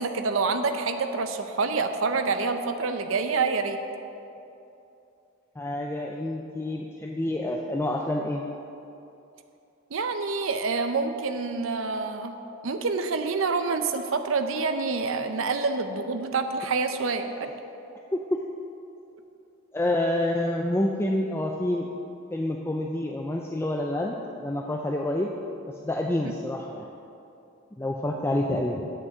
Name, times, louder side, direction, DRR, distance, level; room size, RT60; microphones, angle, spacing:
voice 1, 0.0-3.8 9.9-12.3 12.6-17.5 26.2-26.3, right 4 dB, 70° right, 7 dB, 0.6 m, -27 dB
voice 2, 5.6-8.4 18.1-18.4 19.7-21.9 22.3-25.3 25.7-26.9 27.8-28.9, left 1 dB, 10° left, 1 dB, 0.4 m, -28 dB
8.0 x 6.2 x 7.6 m, 2.8 s
head